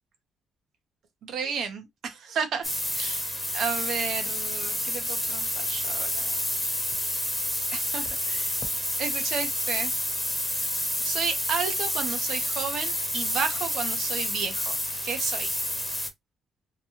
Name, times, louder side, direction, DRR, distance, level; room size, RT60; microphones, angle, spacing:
voice 1, 1.2-2.7 2.9-3.2 3.5-6.4 7.7-8.6 9.0-10.0 11.0-14.8 15.0-15.6, right 6 dB, 70° right, 0.8 m, -32 dB
sound 1, 2.6-16.1, left 1 dB, 10° left, 0.9 m, -29 dB
2.9 x 2.3 x 3.0 m
cardioid pair, 90°, 0 cm